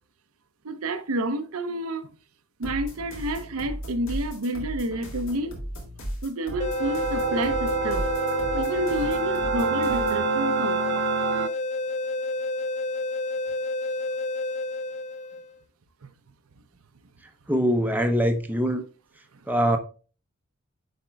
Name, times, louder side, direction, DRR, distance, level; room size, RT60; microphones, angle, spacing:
voice 1, 0.6-2.1 2.6-5.6 6.2-8.1 8.5-11.0, right 1 dB, 80° right, 0.7 m, -29 dB
sound 1, 2.6-10.2, equal, 65° left, 2.1 m, -36 dB
sound 2, 6.5-11.5, right 6 dB, 50° right, 0.4 m, -28 dB
sound 3, 6.6-15.5, left 2 dB, 35° left, 0.3 m, -29 dB
voice 2, 17.5-18.8 19.5-19.8, equal, 10° right, 0.6 m, -23 dB
10.0 x 4.3 x 2.3 m
head